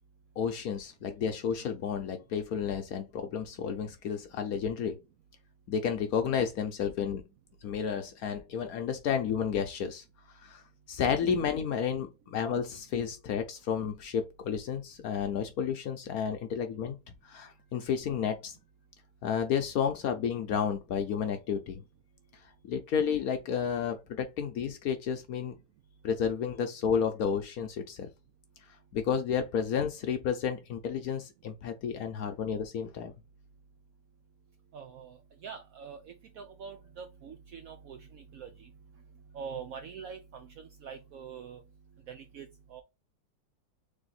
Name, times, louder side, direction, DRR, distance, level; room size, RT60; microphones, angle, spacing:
voice 1, 0.4-5.0 5.7-7.2 7.6-10.0 10.4-10.6 10.9-17.0 17.2-18.6 19.2-21.8 22.6-25.6 26.0-28.1 28.9-33.1, left 7 dB, 65° left, 1.0 m, -31 dB
voice 2, 34.7-38.7 39.3-41.6 42.1-42.8, right 6 dB, 70° right, 0.8 m, -44 dB
3.4 x 3.4 x 3.9 m
omnidirectional pair, 2.0 m